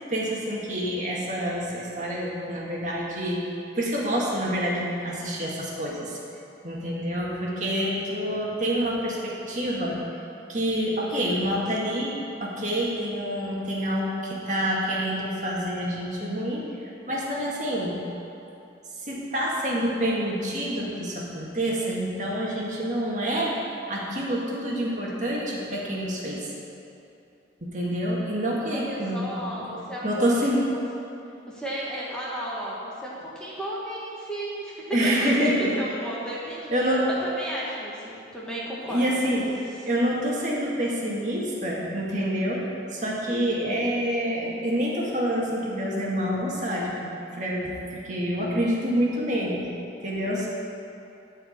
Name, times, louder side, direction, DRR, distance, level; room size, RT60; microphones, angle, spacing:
voice 1, 0.1-3.4 3.8-6.2 6.6-10.0 10.5-12.1 12.4-18.0 19.0-23.5 23.9-26.4 27.6-29.6 30.0-30.6 34.9-35.7 36.7-37.1 38.9-39.5 39.8-42.6 42.9-46.9 47.3-49.6 50.0-50.5, equal, 40° right, -4 dB, 2.0 m, -27 dB
voice 2, 28.7-30.2 31.5-36.9 37.2-39.0, right 1 dB, 5° left, -6 dB, 1.5 m, -34 dB
13.5 x 4.9 x 8.7 m, 2.7 s
head